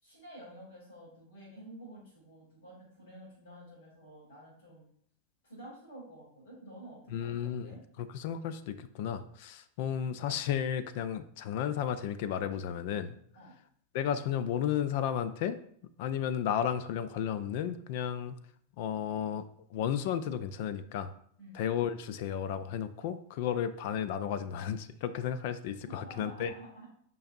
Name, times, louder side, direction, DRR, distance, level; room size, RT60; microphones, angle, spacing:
voice 1, 0.0-4.8 5.4-7.8 13.3-13.5 21.4-21.6 25.8-26.9, right 1 dB, 70° left, -4 dB, 2.8 m, -50 dB
voice 2, 7.1-13.1 13.9-15.6 16.0-18.3 18.8-19.4 19.7-21.1 21.5-26.5, left 9 dB, 50° left, 13 dB, 0.4 m, -33 dB
8.7 x 5.4 x 2.5 m, 0.65 s
figure-of-eight pair, 90°, 0 cm